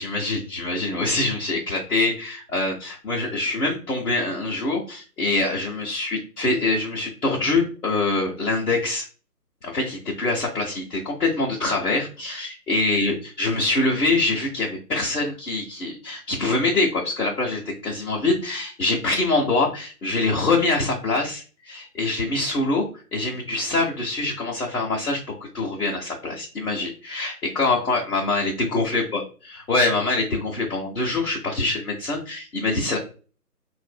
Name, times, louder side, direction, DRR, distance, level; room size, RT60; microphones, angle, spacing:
voice 1, 0.0-9.1 9.6-25.2 25.5-29.2 29.5-33.0, left 2 dB, 65° left, -4 dB, 1.0 m, -24 dB
4.0 x 2.5 x 2.2 m, 0.37 s
figure-of-eight pair, 155°, 47 cm